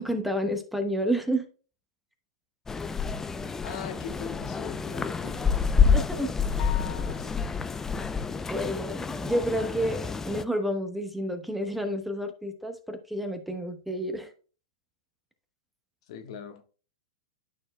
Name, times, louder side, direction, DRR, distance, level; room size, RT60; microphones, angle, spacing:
voice 1, 0.0-1.4 5.4-5.5 5.9-6.7 8.5-14.3, equal, 5° right, 1.0 m, -30 dB
sound 1, 2.7-10.4, left 6 dB, 15° left, 0.4 m, -28 dB
voice 2, 3.6-5.9 6.9-7.4 16.1-16.6, left 7 dB, 65° left, 1.2 m, -41 dB
sound 2, 6.6-7.6, left 17 dB, 45° left, 0.7 m, -41 dB
11.5 x 4.3 x 2.2 m
hypercardioid pair, 115°, 3 cm